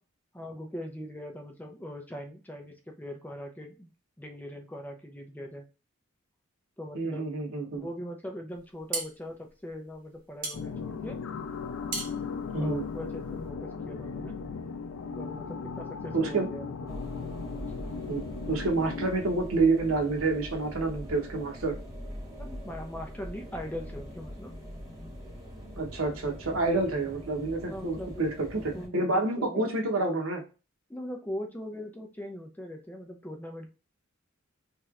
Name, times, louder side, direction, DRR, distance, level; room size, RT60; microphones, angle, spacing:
voice 1, 0.3-3.9 4.2-5.6 6.8-7.3 7.8-11.2 12.6-14.4 15.2-17.0 22.4-24.5 27.7-28.2 28.7-29.7 30.9-33.7, left 1 dB, 10° left, 2 dB, 0.5 m, -40 dB
voice 2, 6.9-7.9 12.5-12.8 16.1-16.5 18.1-21.8 25.8-30.4, right 3 dB, 80° right, 2 dB, 0.9 m, -28 dB
sound 1, 8.5-13.5, right 3 dB, 40° right, 0.9 m, -39 dB
sound 2, 10.5-19.1, left 5 dB, 80° left, 0.4 m, -37 dB
sound 3, 16.9-28.9, equal, 15° right, 1.4 m, -42 dB
3.1 x 2.9 x 2.4 m, 0.32 s
head